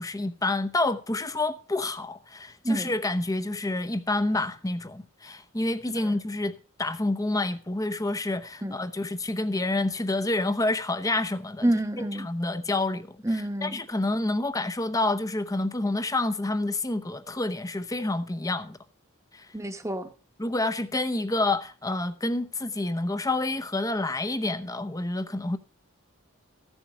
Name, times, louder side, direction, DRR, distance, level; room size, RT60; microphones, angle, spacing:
voice 1, 0.0-11.6 12.2-13.2 13.6-18.8 19.3-19.5 20.4-25.6, left 2 dB, 15° left, 0.7 m, -28 dB
voice 2, 11.6-12.3 13.2-13.8 19.5-20.1, right 1 dB, 15° right, 1.0 m, -28 dB
14.5 x 7.2 x 4.8 m
head